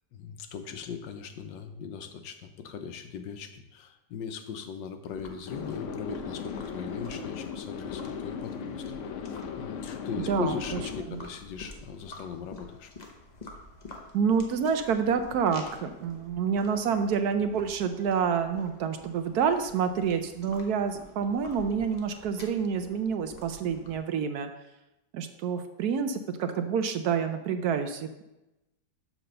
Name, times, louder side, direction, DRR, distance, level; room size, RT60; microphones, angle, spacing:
voice 1, 0.1-8.8 9.6-12.9, left 7 dB, 85° left, 8 dB, 1.4 m, -39 dB
sound 1, 5.0-24.1, left 2 dB, 35° left, 0.8 m, -48 dB
sound 2, 5.5-11.0, left 6 dB, 65° left, 0.8 m, -37 dB
voice 2, 14.1-24.5 25.1-28.2, right 6 dB, 70° right, 8 dB, 1.0 m, -28 dB
6.0 x 5.0 x 6.6 m, 0.96 s
omnidirectional pair, 1.9 m